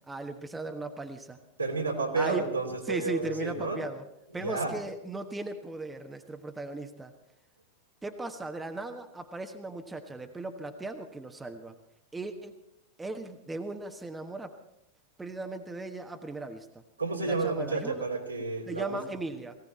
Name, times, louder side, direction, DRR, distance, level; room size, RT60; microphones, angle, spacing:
voice 1, 0.1-1.4 2.1-2.5 2.8-4.0 4.3-7.1 8.0-11.7 12.1-12.5 13.0-14.6 15.2-16.7 17.2-18.0 18.7-19.6, right 2 dB, 10° right, 6 dB, 1.3 m, -37 dB
voice 2, 1.6-3.8 4.4-4.7 17.0-19.0, right 3 dB, 80° right, 0 dB, 3.3 m, -31 dB
18.5 x 17.5 x 4.3 m, 0.81 s
figure-of-eight pair, 90°, 0 cm